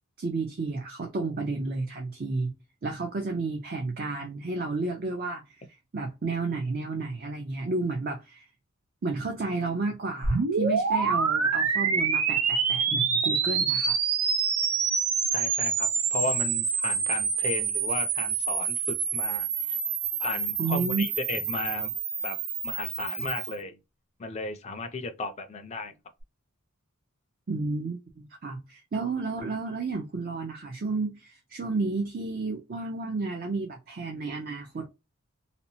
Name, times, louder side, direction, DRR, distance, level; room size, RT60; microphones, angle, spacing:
voice 1, 0.2-2.6 2.8-5.6 5.9-8.5 9.0-14.0 20.6-21.1 27.5-34.9, right 3 dB, 45° right, 0.5 m, -31 dB
sound 1, 10.2-23.5, right 6 dB, 90° right, 0.7 m, -27 dB
voice 2, 15.3-19.8 20.2-21.9 22.2-22.4 22.6-23.8 24.2-25.9, left 3 dB, 30° left, 0.4 m, -35 dB
2.8 x 2.0 x 2.7 m
head